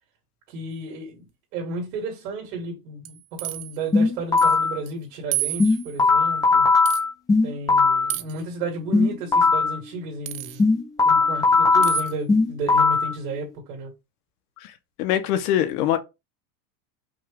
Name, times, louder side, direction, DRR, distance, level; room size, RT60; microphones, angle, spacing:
voice 1, 0.5-1.3 1.5-6.7 7.4-10.7 11.0-13.9, right 2 dB, 75° right, 2.4 m, -33 dB
sound 1, 3.0-3.8 4.4-4.6 4.9-5.0 5.3-6.0 6.9-7.0 8.1-8.4 10.3-10.6 11.8-12.1, right 17 dB, 40° right, 0.4 m, -30 dB
sound 2, 3.9-4.8 5.6-8.1 8.9-9.8 10.6-13.1, left 4 dB, 10° left, 0.6 m, -19 dB
voice 2, 15.0-16.0, left 11 dB, 70° left, 1.0 m, -22 dB
5.4 x 2.4 x 3.4 m
supercardioid pair, 165°, 46 cm